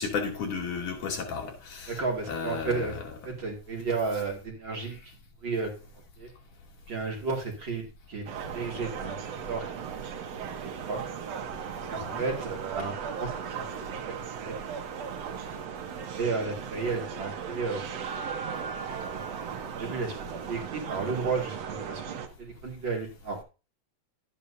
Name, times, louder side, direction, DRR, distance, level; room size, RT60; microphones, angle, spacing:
voice 1, 0.0-2.0 2.3-2.9 12.0-12.2, left 5 dB, 85° left, 4.1 m, -33 dB
voice 2, 1.9-2.9 3.2-5.0 5.4-5.7 6.2-6.3 6.9-9.2 9.5-9.6 10.9-11.0 11.9-14.1 14.4-14.5 16.2-17.8 19.1-19.2 19.8-20.2 20.5-23.4, right 4 dB, 40° right, 3.0 m, -33 dB
sound 1, 8.3-22.3, right 7 dB, 60° right, 2.3 m, -37 dB
12.5 x 9.7 x 2.7 m
omnidirectional pair, 3.5 m